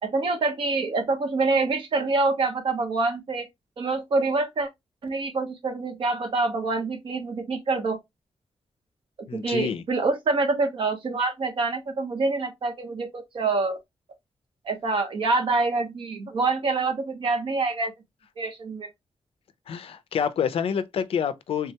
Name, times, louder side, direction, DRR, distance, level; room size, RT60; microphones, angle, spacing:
voice 1, 0.0-3.5 3.8-4.7 5.0-8.0 9.3-13.8 14.6-17.9 18.4-18.9, right 3 dB, 55° right, 0.8 m, -26 dB
voice 2, 9.3-9.8 19.7-21.7, left 7 dB, 70° left, 0.4 m, -27 dB
3.4 x 2.2 x 2.7 m
wide cardioid pair, 175°, 10 cm